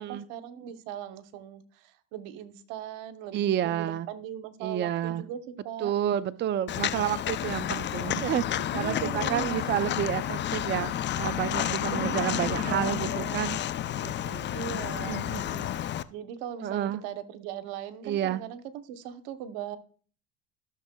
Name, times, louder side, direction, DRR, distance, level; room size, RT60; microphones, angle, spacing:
voice 1, 0.0-5.9 8.7-9.8 11.9-13.4 14.5-15.2 16.1-19.8, right 10 dB, 80° right, 11 dB, 1.0 m, -39 dB
voice 2, 3.3-4.1 4.6-5.2 5.8-13.6 14.0-14.5 15.1-15.7 16.6-17.0 18.0-18.4, right 11 dB, 30° right, 14 dB, 0.4 m, -30 dB
Walk footsteps, 6.7-16.0, left 11 dB, 35° left, 0.4 m, -31 dB
14.0 x 6.5 x 2.2 m, 0.44 s
supercardioid pair, 90°, 34 cm